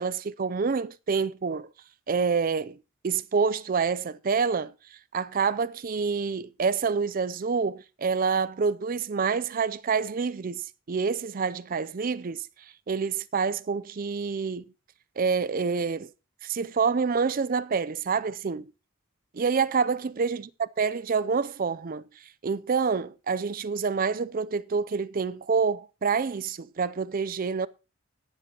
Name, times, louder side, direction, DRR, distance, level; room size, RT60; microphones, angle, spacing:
voice 1, 0.0-1.7 2.1-2.8 3.0-4.7 5.1-12.4 12.9-14.6 15.2-16.1 16.4-18.7 19.3-22.0 22.4-27.7, right 5 dB, 40° right, 0.4 m, -27 dB
18.5 x 7.5 x 2.9 m
head